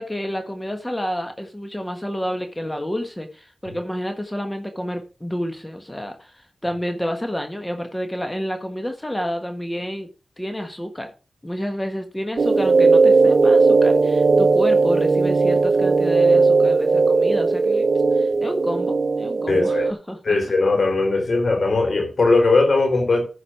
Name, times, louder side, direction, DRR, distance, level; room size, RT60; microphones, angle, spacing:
voice 1, 0.0-10.1 10.4-11.1 11.4-20.4, equal, 15° left, 1.6 m, -29 dB
sound 1, 12.4-19.9, right 4 dB, 65° right, 0.7 m, -17 dB
voice 2, 19.5-19.9 20.2-23.2, left 3 dB, 70° left, 3.8 m, -19 dB
14.0 x 4.9 x 4.8 m
cardioid pair, 45°, 0 cm